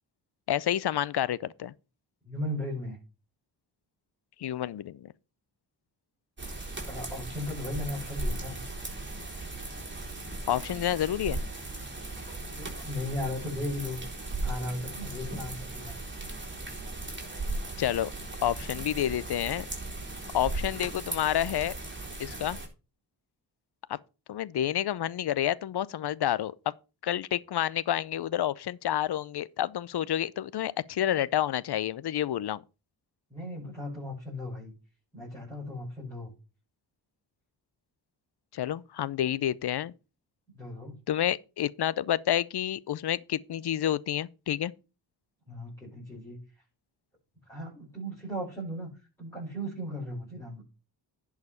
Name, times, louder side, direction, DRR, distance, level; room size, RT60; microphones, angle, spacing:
voice 1, 0.5-1.7 4.4-5.1 10.5-11.4 17.8-18.1 18.4-19.7 20.3-21.7 22.2-22.6 23.9-24.0 24.3-26.7 27.0-32.6 38.5-39.9 41.1-44.7, left 11 dB, 60° left, 0.6 m, -29 dB
voice 2, 2.2-3.0 6.8-8.6 12.4-16.0 33.3-34.7 35.1-36.3 40.5-41.0 45.5-46.4 47.5-50.6, left 1 dB, 5° left, 5.5 m, -37 dB
sound 1, 6.4-22.7, right 2 dB, 25° right, 3.9 m, -37 dB
10.5 x 4.9 x 5.6 m
cardioid pair, 60°, 45 cm